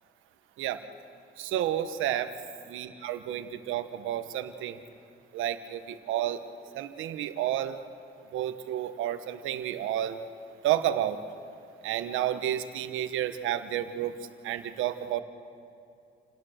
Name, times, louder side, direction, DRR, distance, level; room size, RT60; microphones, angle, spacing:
voice 1, 1.4-2.3 2.7-4.8 5.3-6.4 6.7-7.8 8.3-10.2 10.6-11.2 11.8-14.1 14.4-15.2, right 11 dB, 90° right, 10 dB, 1.2 m, -30 dB
28.5 x 17.5 x 6.5 m, 2.6 s
cardioid pair, 90°, 20 cm